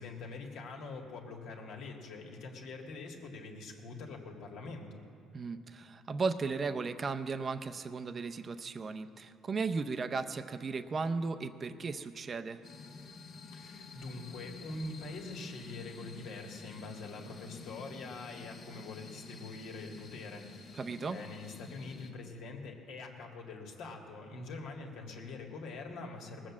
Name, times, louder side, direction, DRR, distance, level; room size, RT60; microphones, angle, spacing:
voice 1, 0.0-5.0 13.5-20.7 21.1-26.5, left 3 dB, 75° left, 1 dB, 1.9 m, -44 dB
voice 2, 5.3-12.6 20.8-21.2, right 4 dB, 35° right, 8 dB, 0.6 m, -36 dB
sound 1, 12.6-22.1, left 4 dB, 55° left, 1.4 m, -49 dB
19.0 x 7.5 x 7.3 m, 2.5 s
cardioid pair, 100°, 0 cm